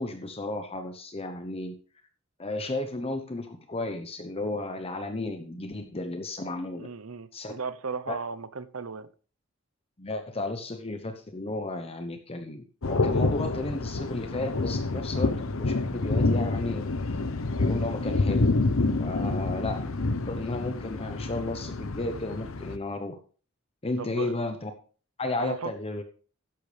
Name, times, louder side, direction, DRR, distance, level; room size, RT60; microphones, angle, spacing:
voice 1, 0.0-1.7 2.4-6.9 7.3-7.5 8.1-8.2 10.0-17.2 17.5-18.5 19.0-19.9 20.3-23.2 23.8-24.7 25.2-26.0, left 2 dB, 30° left, 7 dB, 1.0 m, -33 dB
voice 2, 6.7-9.1 19.1-19.4 24.0-24.4 25.4-25.7, right 5 dB, 80° right, 14 dB, 0.9 m, -36 dB
sound 1, 12.8-22.8, left 3 dB, 70° left, 0.9 m, -28 dB
13.0 x 10.5 x 3.4 m, 0.39 s
head